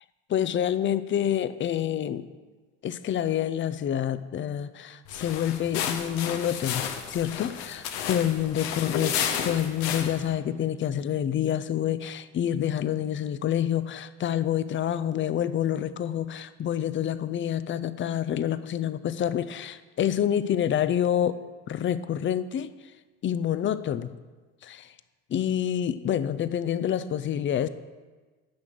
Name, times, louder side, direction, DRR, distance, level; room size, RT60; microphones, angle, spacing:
voice 1, 0.3-2.3 2.8-9.2 9.4-21.4 21.7-22.7 23.2-24.1 24.6-24.9 25.3-27.7, left 10 dB, 35° left, 14 dB, 0.7 m, -27 dB
sound 1, 5.1-10.3, left 8 dB, 70° left, 1.3 m, -32 dB
9.6 x 6.1 x 8.1 m, 1.3 s
hypercardioid pair, 75°, 35 cm